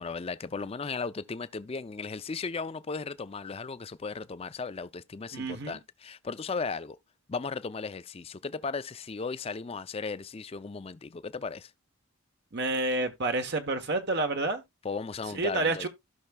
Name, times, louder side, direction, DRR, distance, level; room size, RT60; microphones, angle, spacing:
voice 1, 0.0-7.0 7.3-11.7 14.8-15.9, left 4 dB, 25° left, 0.4 m, -36 dB
voice 2, 5.3-5.8 12.5-14.6 15.3-15.9, right 2 dB, 50° right, 1.0 m, -29 dB
15.5 x 5.7 x 2.2 m
head